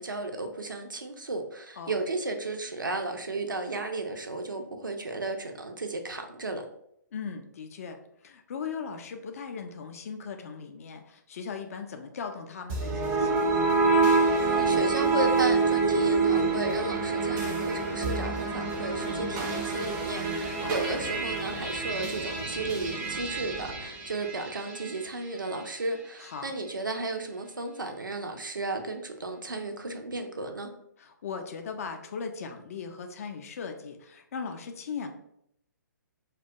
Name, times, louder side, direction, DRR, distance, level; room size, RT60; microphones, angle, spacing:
voice 1, 0.0-6.6 14.4-30.7, right 2 dB, 85° right, 5 dB, 0.4 m, -34 dB
voice 2, 7.1-13.7 20.6-20.8 26.2-26.5 31.0-35.1, left 5 dB, 50° left, 6 dB, 0.3 m, -38 dB
sound 1, 12.7-25.0, right 3 dB, 25° right, 0.4 m, -27 dB
2.2 x 2.2 x 2.6 m, 0.74 s
figure-of-eight pair, 130°, 10 cm